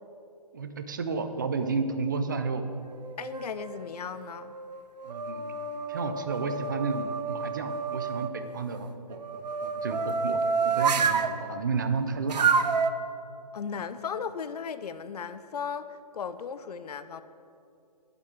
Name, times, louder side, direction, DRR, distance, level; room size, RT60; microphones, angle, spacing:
voice 1, 0.5-2.6 5.0-5.4 5.9-12.5, right 4 dB, 30° right, 8 dB, 0.4 m, -32 dB
sound 1, 2.9-3.8 4.4-8.3 9.1-11.3 12.3-12.9, right 5 dB, 85° right, 0.6 m, -29 dB
voice 2, 3.2-4.5 13.5-17.2, left 6 dB, 70° left, 12 dB, 0.5 m, -36 dB
6.7 x 5.9 x 7.2 m, 2.5 s
hypercardioid pair, 165°, 21 cm